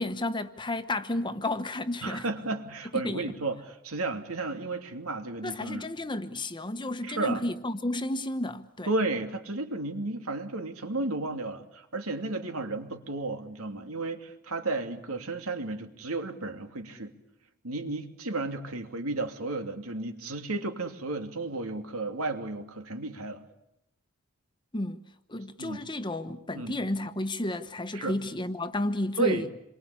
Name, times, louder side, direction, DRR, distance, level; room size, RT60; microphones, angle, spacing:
voice 1, 0.0-2.2 3.0-3.3 5.4-8.9 24.7-25.0 25.3-29.5, left 1 dB, 20° left, 1.1 m, -32 dB
voice 2, 2.0-5.9 7.0-7.4 8.9-17.1 17.6-23.4 25.6-25.8 26.5-26.7 27.9-28.1 29.2-29.4, right 3 dB, 90° right, 2.8 m, -33 dB
28.0 x 23.5 x 8.5 m
head